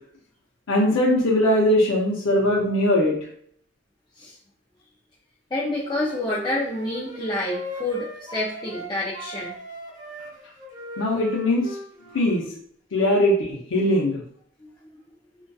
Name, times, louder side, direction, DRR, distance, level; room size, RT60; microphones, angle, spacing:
voice 1, 0.7-3.2 11.0-11.7 12.1-12.4 12.9-14.2, left 1 dB, 80° left, -2 dB, 0.5 m, -20 dB
voice 2, 5.5-9.6 12.1-12.3 14.6-14.7, left 1 dB, 20° left, -6 dB, 0.3 m, -28 dB
Wind instrument woodwind instrument, 5.8-8.9 9.1-12.4, equal, 20° right, 0.6 m, -39 dB
2.6 x 2.2 x 2.2 m, 0.63 s
head